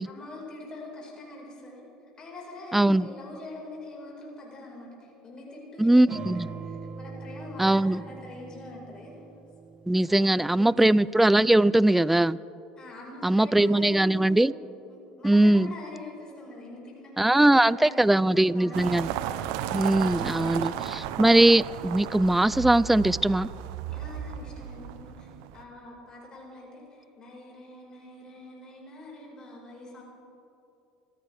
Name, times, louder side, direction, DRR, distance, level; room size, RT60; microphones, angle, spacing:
voice 1, 0.0-1.8 2.2-9.2 10.1-11.0 12.8-14.3 14.9-19.1 19.5-19.9 20.2-20.5 23.9-25.3 25.5-30.0, left 2 dB, 30° left, -3 dB, 5.1 m, -44 dB
voice 2, 2.7-3.0 5.8-6.5 7.6-8.0 9.9-12.4 13.2-14.5 15.2-15.7 17.2-19.1 19.7-23.5, right 1 dB, 5° right, 20 dB, 0.3 m, -21 dB
sound 1, 6.1-11.0, right 5 dB, 40° right, 1.4 m, -41 dB
sound 2, 18.7-25.6, right 11 dB, 75° right, 0.8 m, -34 dB
26.0 x 15.0 x 3.5 m, 2.8 s
supercardioid pair, 90°, 3 cm